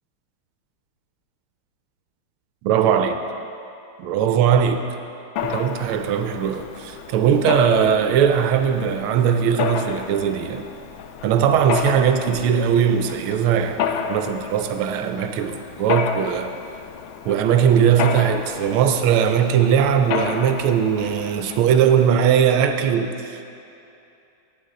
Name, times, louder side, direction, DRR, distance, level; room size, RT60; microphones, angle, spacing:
voice 1, 2.6-3.2 4.0-4.9 5.4-10.6 11.2-16.5 17.2-23.5, right 8 dB, 85° right, 7 dB, 1.5 m, -19 dB
Mechanisms, 5.4-22.1, left 7 dB, 80° left, 1.3 m, -31 dB
14.5 x 9.7 x 3.8 m, 2.7 s
omnidirectional pair, 2.3 m